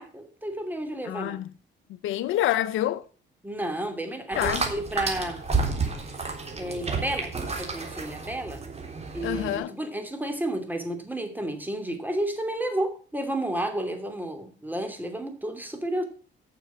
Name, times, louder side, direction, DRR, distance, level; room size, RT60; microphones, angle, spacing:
voice 1, 0.0-1.4 3.4-5.4 6.6-8.6 9.1-16.0, right 1 dB, 10° right, 2.8 m, -31 dB
voice 2, 1.0-1.5 2.0-3.1 4.4-4.7 9.2-9.8, left 13 dB, 85° left, 0.7 m, -27 dB
sound 1, 4.3-9.6, right 4 dB, 30° right, 3.5 m, -31 dB
9.6 x 6.9 x 7.3 m
cardioid pair, 90°, 20 cm